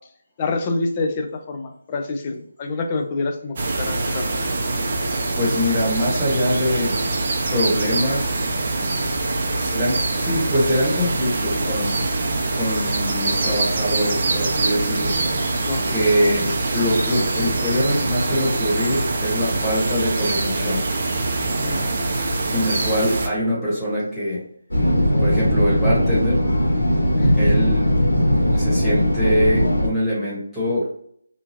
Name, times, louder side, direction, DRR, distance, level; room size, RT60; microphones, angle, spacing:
voice 1, 0.4-4.4 12.3-12.6 15.7-15.8 21.6-21.8 27.1-27.4, left 3 dB, 25° left, 3 dB, 0.4 m, -27 dB
sound 1, 3.6-23.3, right 2 dB, 40° right, 0.5 m, -24 dB
voice 2, 5.3-6.9 7.5-8.5 9.6-12.0 12.5-15.1 15.9-16.5 16.7-20.8 22.5-24.4 25.2-26.4 27.4-27.9 28.5-30.8, equal, 5° left, -10 dB, 1.2 m, -23 dB
sound 2, 24.7-29.9, equal, 85° left, 1.1 m, -19 dB
2.9 x 2.3 x 2.7 m, 0.66 s
figure-of-eight pair, 160°, 0 cm